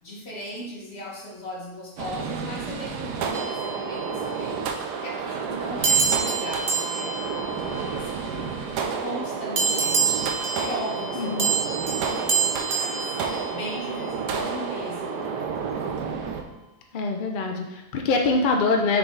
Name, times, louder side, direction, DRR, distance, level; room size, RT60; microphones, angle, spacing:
voice 1, 0.0-4.6 5.0-8.6 9.0-10.3 10.6-13.2 13.5-15.2, equal, 40° left, -5 dB, 1.9 m, -38 dB
sound 1, 2.0-16.4, right 5 dB, 80° right, 1.2 m, -30 dB
sound 2, 3.3-4.6 5.8-8.5 9.6-14.1, right 5 dB, 50° right, 0.6 m, -28 dB
voice 2, 11.2-11.5 16.9-19.0, left 3 dB, 75° left, 2 dB, 0.4 m, -24 dB
6.2 x 4.8 x 3.9 m, 0.95 s
omnidirectional pair, 1.8 m